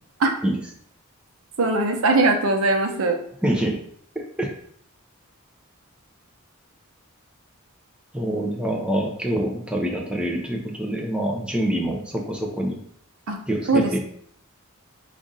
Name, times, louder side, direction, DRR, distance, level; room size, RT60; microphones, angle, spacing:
voice 1, 1.6-3.2 13.3-13.4 13.7-14.0, right 2 dB, 80° right, 4 dB, 0.7 m, -20 dB
voice 2, 3.4-3.8 4.1-4.5 8.1-12.8 13.5-14.0, right 1 dB, 5° right, 0 dB, 0.6 m, -25 dB
4.9 x 2.5 x 3.9 m, 0.63 s
head